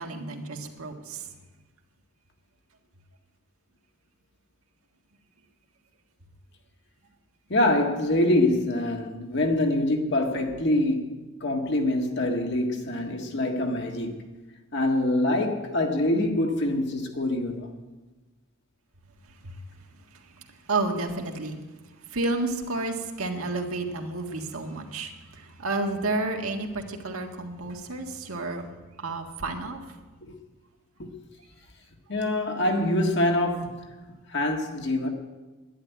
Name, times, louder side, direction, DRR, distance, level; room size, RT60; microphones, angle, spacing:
voice 1, 0.0-1.3 19.4-19.6 20.1-21.6 22.1-28.6 29.0-29.8, right 2 dB, 75° right, 1.7 m, -31 dB
voice 2, 7.5-14.2 14.7-17.7 30.3-30.4 31.0-31.1 32.1-35.1, left 1 dB, 50° left, 1.8 m, -25 dB
11.0 x 11.0 x 9.2 m
head